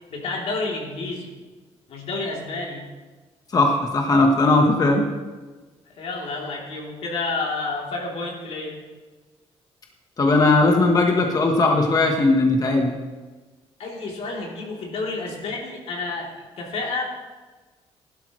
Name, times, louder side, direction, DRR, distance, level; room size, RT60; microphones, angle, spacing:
voice 1, 0.1-1.3 1.9-2.8 6.0-8.8 13.8-17.0, left 3 dB, 65° left, -2 dB, 3.2 m, -30 dB
voice 2, 3.5-5.0 10.2-12.9, left 2 dB, 35° left, 2 dB, 1.2 m, -18 dB
16.0 x 12.0 x 3.2 m, 1.3 s
cardioid pair, 125°, 11 cm